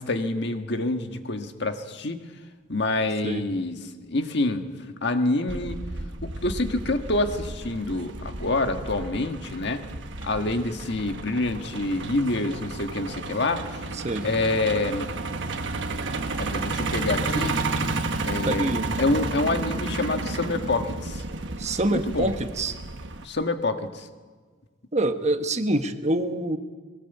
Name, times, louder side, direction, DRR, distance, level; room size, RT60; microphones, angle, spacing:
voice 1, 0.0-2.2 2.7-4.7 5.0-5.8 6.2-9.9 10.2-13.8 14.2-15.1 16.4-17.6 18.2-18.7 19.0-21.2 21.9-22.3 23.2-24.1, left 2 dB, 65° left, 6 dB, 1.6 m, -27 dB
Truck, 5.5-23.2, right 3 dB, 70° right, 1.4 m, -32 dB
voice 2, 18.5-18.8 21.6-22.7 24.9-26.6, right 1 dB, 35° right, 8 dB, 1.2 m, -25 dB
21.5 x 18.0 x 8.1 m, 1.5 s
head